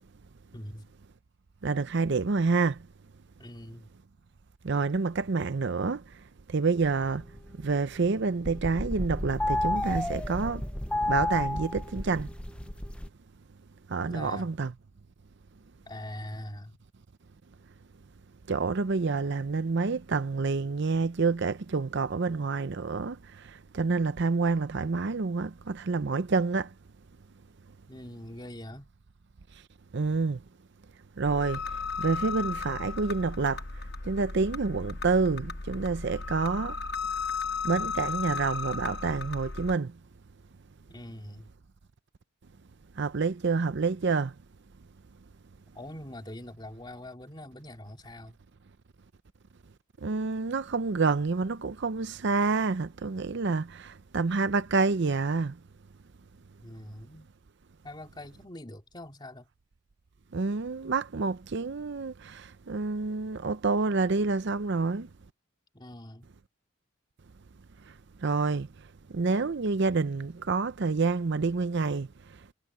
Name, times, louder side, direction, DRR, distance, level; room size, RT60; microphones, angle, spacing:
voice 1, 0.5-0.9 3.4-3.9 14.0-14.5 15.9-16.8 27.9-28.9 40.9-41.5 45.8-48.4 56.6-57.3 57.8-59.5 65.7-66.3, left 1 dB, 20° left, 3.5 m, -43 dB
voice 2, 1.6-2.8 4.6-6.0 6.5-7.2 7.6-10.6 11.1-12.3 13.9-14.7 18.5-23.2 23.7-26.7 29.9-30.4 31.2-31.6 32.0-33.6 34.0-36.8 37.6-39.9 43.0-44.3 50.0-55.5 60.3-65.1 68.2-68.7 69.1-72.1, right 4 dB, 55° right, 0.6 m, -28 dB
sound 1, 6.8-8.1 8.3-13.1, left 1 dB, 5° left, 0.6 m, -32 dB
sound 2, 31.2-39.8, left 5 dB, 50° left, 1.0 m, -35 dB
head